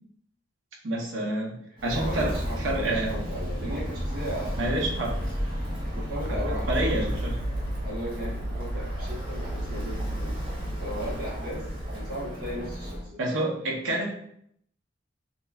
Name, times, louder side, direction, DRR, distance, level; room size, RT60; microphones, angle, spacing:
voice 1, 0.8-3.2 4.6-5.3 6.2-7.4 13.2-14.1, right 1 dB, 80° right, -1 dB, 0.6 m, -29 dB
Walk footsteps, 1.8-13.0, equal, 25° right, 0.5 m, -33 dB
voice 2, 1.9-4.9 5.8-7.2 7.8-10.4 10.8-13.3, equal, 50° right, -6 dB, 1.1 m, -37 dB
sound 1, 6.6-12.5, right 1 dB, 50° left, 0.8 m, -37 dB
2.9 x 2.3 x 2.3 m, 0.70 s
head